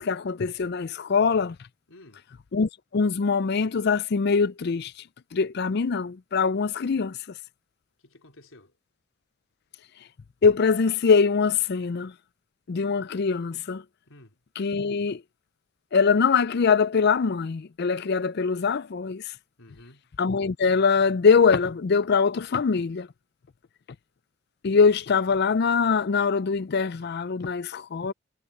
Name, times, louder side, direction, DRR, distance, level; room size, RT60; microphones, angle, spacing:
voice 1, 0.0-1.6 2.5-4.9 5.3-7.2 10.4-12.1 12.7-13.8 14.6-15.2 15.9-19.2 20.2-23.1 24.6-28.1, left 5 dB, 50° left, 0.4 m, -23 dB
voice 2, 1.9-2.3 8.0-8.8 14.1-14.4 19.6-20.1, left 1 dB, 75° left, 3.9 m, -52 dB
head